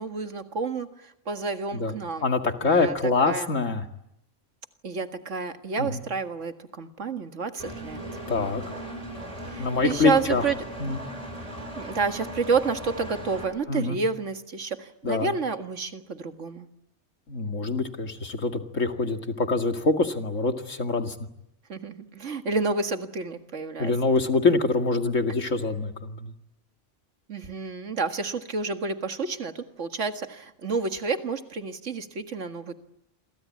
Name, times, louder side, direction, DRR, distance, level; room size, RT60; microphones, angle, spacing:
voice 1, 0.0-2.3 2.6-3.5 4.8-8.0 9.4-10.6 11.7-16.7 21.7-23.9 27.3-32.7, right 4 dB, 75° right, 8 dB, 2.1 m, -30 dB
voice 2, 2.2-3.8 5.8-6.0 8.3-8.6 9.6-10.4 10.8-11.0 13.7-14.0 15.0-15.3 17.3-21.1 23.8-26.3, left 3 dB, 85° left, 6 dB, 2.5 m, -25 dB
Engine, 7.6-13.4, equal, 30° right, 5.8 m, -38 dB
28.0 x 23.5 x 8.7 m, 0.85 s
omnidirectional pair, 1.3 m